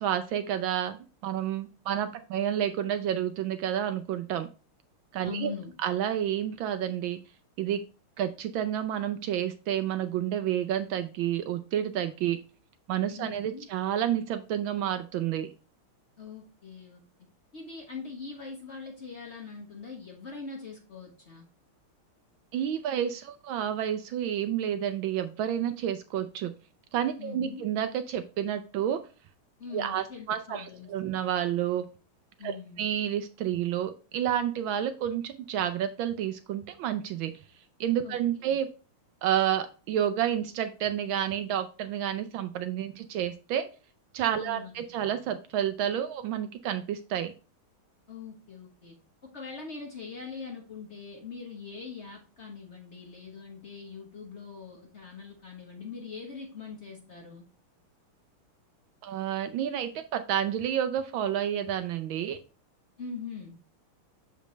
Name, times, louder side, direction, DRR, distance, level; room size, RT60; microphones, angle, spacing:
voice 1, 0.0-4.5 5.1-5.5 5.8-7.2 7.6-7.8 8.2-12.4 12.9-15.5 22.5-26.5 26.9-29.1 29.7-31.9 32.4-37.3 37.8-38.7 39.2-43.7 44.1-47.3 59.0-62.4, right 10 dB, 75° right, 10 dB, 1.2 m, -30 dB
voice 2, 5.2-5.7 13.1-13.7 16.2-17.0 17.5-21.5 27.2-27.7 29.6-30.9 32.4-32.8 38.0-38.5 44.4-44.9 48.1-48.9 49.2-57.4 63.0-63.6, left 5 dB, 40° left, 1 dB, 1.1 m, -42 dB
6.5 x 5.1 x 3.1 m, 0.34 s
omnidirectional pair, 2.4 m